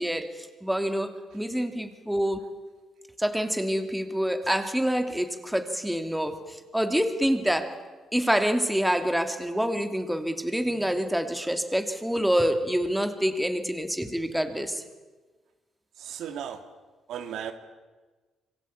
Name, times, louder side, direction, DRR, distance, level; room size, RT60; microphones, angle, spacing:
voice 1, 0.0-2.5 3.2-7.8 8.1-14.8, equal, 5° right, 7 dB, 2.9 m, -27 dB
voice 2, 16.0-16.6 17.1-17.5, right 9 dB, 80° right, 7 dB, 2.6 m, -35 dB
26.5 x 23.0 x 8.9 m, 1.3 s
cardioid pair, 90°, 0 cm